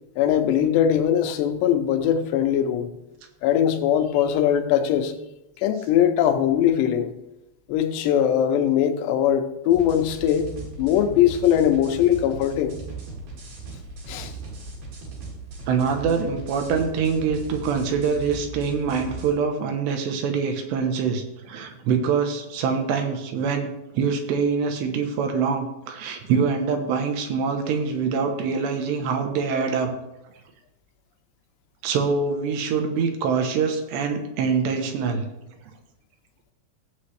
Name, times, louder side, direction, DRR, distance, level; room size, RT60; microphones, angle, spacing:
voice 1, 0.2-2.9 3.4-5.1 5.6-7.1 7.7-10.5 10.8-12.7 14.1-14.3, left 10 dB, 80° left, 7 dB, 2.9 m, -21 dB
sound 1, 9.7-19.3, right 3 dB, 60° right, 4.0 m, -38 dB
voice 2, 15.7-29.9 31.8-35.3, right 5 dB, 80° right, 5 dB, 3.2 m, -24 dB
16.0 x 7.7 x 3.2 m, 0.92 s
omnidirectional pair, 5.0 m